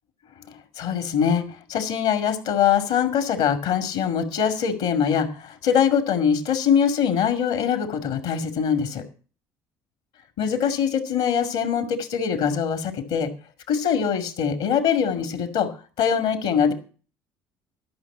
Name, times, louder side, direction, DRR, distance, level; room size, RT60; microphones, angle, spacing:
voice 1, 0.8-1.4 1.7-9.0 10.4-13.3 13.7-15.7 16.0-16.7, left 7 dB, 70° left, 8 dB, 2.2 m, -23 dB
12.0 x 6.1 x 8.5 m, 0.38 s
hypercardioid pair, 65°, 11 cm